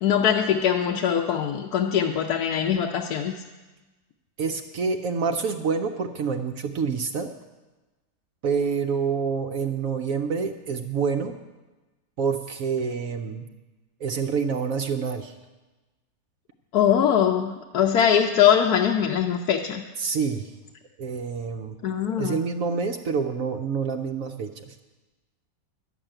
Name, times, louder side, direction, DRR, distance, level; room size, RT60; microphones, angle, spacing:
voice 1, 0.0-3.3 16.7-19.8 21.8-22.4, left 9 dB, 70° left, 2 dB, 1.2 m, -22 dB
voice 2, 4.4-7.3 8.4-11.3 12.2-13.4 14.0-15.3 20.0-20.5 21.0-21.8 22.2-24.7, right 5 dB, 60° right, 5 dB, 1.0 m, -27 dB
11.5 x 7.3 x 8.9 m, 1.2 s
omnidirectional pair, 1.8 m